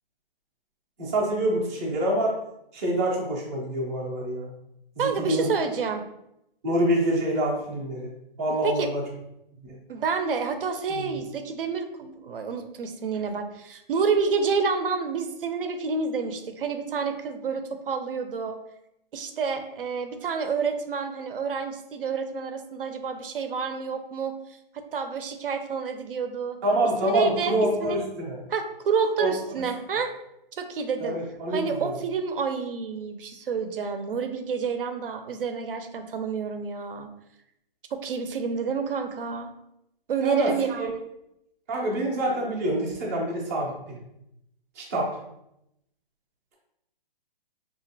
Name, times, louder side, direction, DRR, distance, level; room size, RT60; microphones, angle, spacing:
voice 1, 1.0-2.4 2.7-4.5 4.9-5.5 6.6-8.1 8.4-9.0 10.9-11.1 26.6-28.4 29.2-29.3 29.6-29.7 31.0-31.9 40.2-40.9 41.7-44.0 44.7-45.2, right 1 dB, 15° right, -5 dB, 0.5 m, -26 dB
voice 2, 5.0-6.0 8.6-8.9 9.9-18.6 19.1-24.4 24.9-26.6 27.0-28.0 28.5-30.1 30.6-31.2 31.5-37.1 37.9-39.5 40.1-40.9, right 5 dB, 65° right, 7 dB, 0.6 m, -29 dB
5.0 x 2.5 x 2.6 m, 0.82 s
hypercardioid pair, 165°, 29 cm